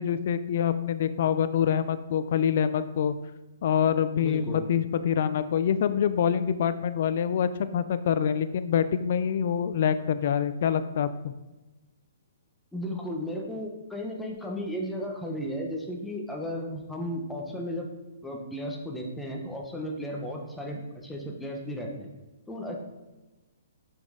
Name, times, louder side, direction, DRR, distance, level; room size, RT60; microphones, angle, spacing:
voice 1, 0.0-3.1 3.6-11.3, left 8 dB, 55° left, 12 dB, 0.4 m, -26 dB
voice 2, 4.2-4.7 12.7-17.9 18.2-22.1 22.5-22.8, equal, 5° left, 0 dB, 1.0 m, -34 dB
5.8 x 5.3 x 3.8 m, 1.1 s
hypercardioid pair, 140°, 0 cm